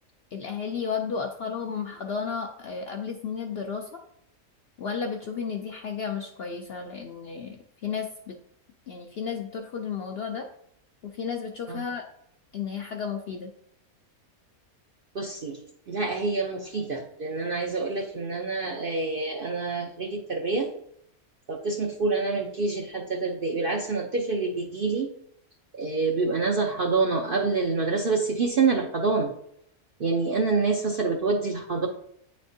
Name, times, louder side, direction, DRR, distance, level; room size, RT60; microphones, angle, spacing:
voice 1, 0.3-4.0 4.8-7.6 7.8-8.4 8.9-10.5 11.0-12.0 12.5-13.5, left 6 dB, 60° left, 3 dB, 0.6 m, -33 dB
voice 2, 15.1-15.6 15.9-20.7 21.5-25.1 25.7-29.3 30.0-31.9, right 3 dB, 55° right, 1 dB, 0.6 m, -27 dB
9.1 x 4.3 x 2.6 m, 0.71 s
omnidirectional pair, 1.5 m